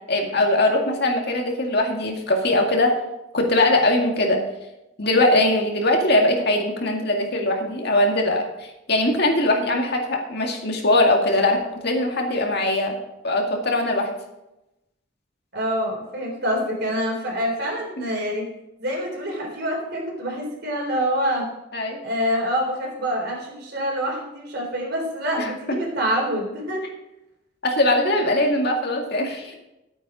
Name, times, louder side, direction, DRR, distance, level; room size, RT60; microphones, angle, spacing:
voice 1, 0.1-3.0 3.3-4.4 5.0-13.0 13.2-14.1 21.7-22.0 25.4-25.5 27.6-29.6, left 1 dB, 55° left, 2 dB, 2.1 m, -21 dB
voice 2, 15.5-18.5 18.8-21.5 22.0-26.8, equal, 55° right, 0 dB, 3.7 m, -26 dB
12.0 x 9.1 x 4.9 m, 0.92 s
head